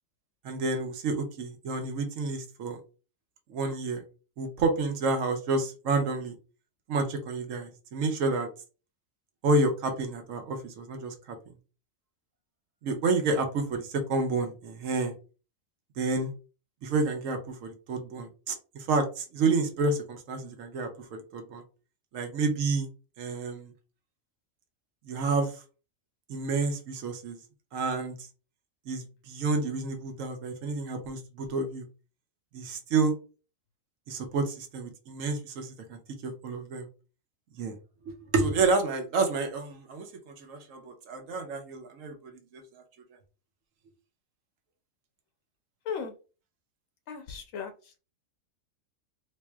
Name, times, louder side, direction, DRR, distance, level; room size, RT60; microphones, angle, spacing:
voice 1, 0.4-2.8 3.5-4.0 4.4-6.3 6.9-8.5 9.4-11.4 12.8-15.1 16.0-16.3 16.8-21.6 22.1-22.9 23.2-23.7 25.1-25.6 26.3-27.4 27.7-28.2 28.9-31.9 32.5-33.1 34.1-36.9 37.6-37.8 38.3-42.6, right 3 dB, 80° right, 5 dB, 1.1 m, -29 dB
voice 2, 47.1-47.7, left 6 dB, 80° left, 5 dB, 1.0 m, -35 dB
3.5 x 3.1 x 2.3 m, 0.34 s
omnidirectional pair, 1.4 m